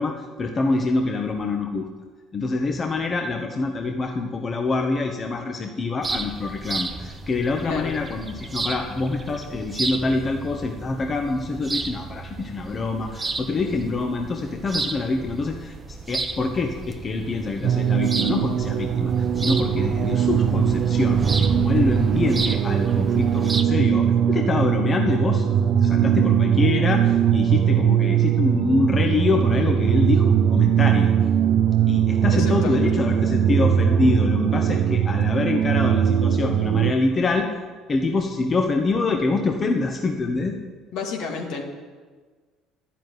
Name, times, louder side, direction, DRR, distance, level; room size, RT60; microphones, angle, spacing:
voice 1, 0.0-1.9 2.3-25.5 25.8-31.1 31.9-37.5 37.9-40.6, left 3 dB, 35° left, 4 dB, 1.2 m, -25 dB
sound 1, 6.0-23.6, right 3 dB, 25° right, 1.0 m, -32 dB
sound 2, 17.6-36.9, right 9 dB, 60° right, 0.6 m, -20 dB
voice 2, 32.3-33.0 40.9-41.6, left 4 dB, 70° left, 1 dB, 2.5 m, -31 dB
10.5 x 7.4 x 9.4 m, 1.5 s
hypercardioid pair, 70°, 0 cm